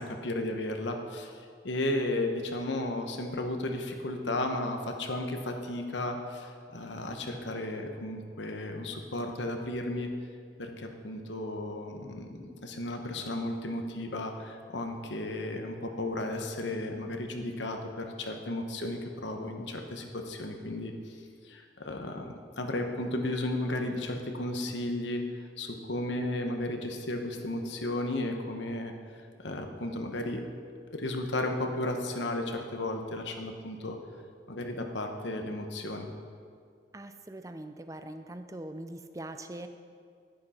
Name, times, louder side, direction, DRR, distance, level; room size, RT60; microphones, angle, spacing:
voice 1, 0.0-1.4 1.6-10.1 10.6-20.9 21.4-25.2 25.6-28.9 29.4-30.4 30.9-34.0 34.5-36.1, left 1 dB, 80° left, 4 dB, 1.1 m, -34 dB
voice 2, 36.9-39.7, right 1 dB, 15° right, 8 dB, 0.4 m, -42 dB
10.5 x 10.5 x 4.3 m, 2.2 s
head